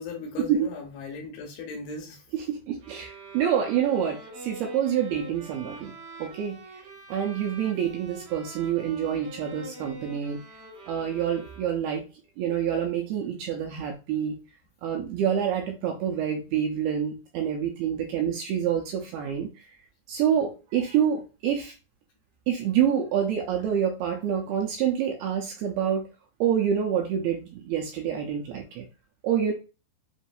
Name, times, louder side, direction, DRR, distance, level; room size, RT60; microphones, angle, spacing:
voice 1, 0.0-2.3, left 4 dB, 75° left, 2 dB, 2.5 m, -37 dB
voice 2, 2.3-5.9 6.2-6.6 7.1-10.4 10.9-12.0 12.4-14.4 14.8-19.7 20.1-21.7 22.5-26.1 26.4-28.9 29.2-29.5, right 9 dB, 80° right, 2 dB, 2.3 m, -27 dB
sound 1, 2.8-12.0, right 2 dB, 60° right, 3.5 m, -44 dB
7.2 x 2.6 x 2.4 m, 0.30 s
omnidirectional pair, 5.0 m